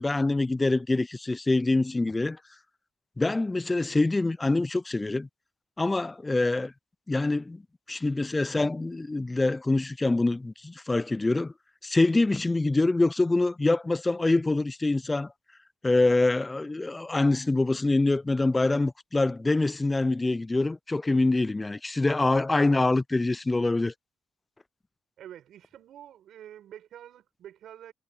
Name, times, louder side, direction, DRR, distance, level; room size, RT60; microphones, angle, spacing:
voice 1, 0.0-2.4 3.2-5.3 5.8-6.7 7.1-7.6 7.9-11.5 11.8-15.3 15.8-23.9, left 2 dB, 20° left, 0.3 m, -25 dB
voice 2, 25.2-27.9, right 11 dB, 75° right, 6.7 m, -47 dB
cardioid pair, 90°, 0 cm